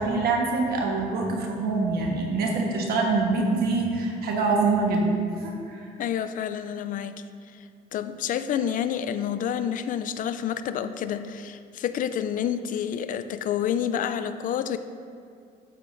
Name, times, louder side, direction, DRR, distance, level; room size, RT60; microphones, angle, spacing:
voice 1, 0.0-5.9, right 3 dB, 65° right, 0 dB, 1.3 m, -25 dB
voice 2, 6.0-7.2 7.9-14.8, left 9 dB, 55° left, 11 dB, 0.4 m, -28 dB
10.0 x 7.4 x 2.6 m, 2.4 s
cardioid pair, 110°, 17 cm